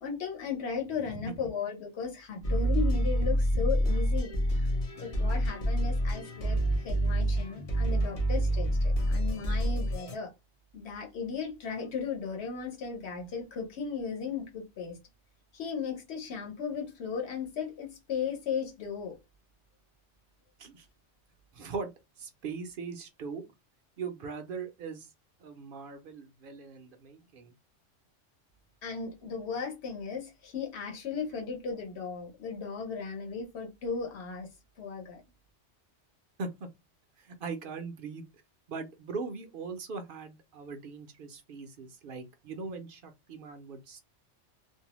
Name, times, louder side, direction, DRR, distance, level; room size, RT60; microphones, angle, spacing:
voice 1, 0.0-4.7 5.0-10.3 10.7-15.0 15.5-19.2 28.8-34.5 34.8-35.2, left 6 dB, 65° left, 1.1 m, -36 dB
sound 1, 2.4-10.2, equal, 40° left, 0.6 m, -27 dB
voice 2, 21.5-21.9 22.2-23.4 24.0-25.1 25.4-27.5 36.4-36.7 37.2-38.3 38.7-44.0, right 4 dB, 60° right, 0.6 m, -40 dB
2.6 x 2.0 x 2.9 m
omnidirectional pair, 1.2 m